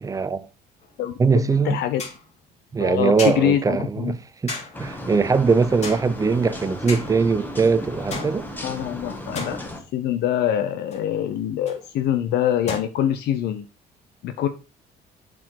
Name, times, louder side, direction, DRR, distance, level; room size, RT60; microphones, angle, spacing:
voice 1, 0.0-0.5 1.2-1.8 2.7-4.2 4.4-8.5, right 5 dB, 20° right, 0.6 m, -21 dB
sound 1, 0.8-0.9 2.0-2.3 3.2-3.6 4.5-5.0 5.8-6.3 6.9-7.3 8.1-8.9 9.3-10.2 10.9-11.1 11.7-11.8 12.7-12.8, left 3 dB, 40° left, 2.5 m, -34 dB
voice 2, 1.0-2.0 2.8-4.1 8.6-13.7 14.2-14.5, left 10 dB, 75° left, 0.7 m, -24 dB
sound 2, 4.7-9.8, left 1 dB, 10° left, 1.6 m, -35 dB
7.5 x 5.0 x 4.6 m
cardioid pair, 110°, 17 cm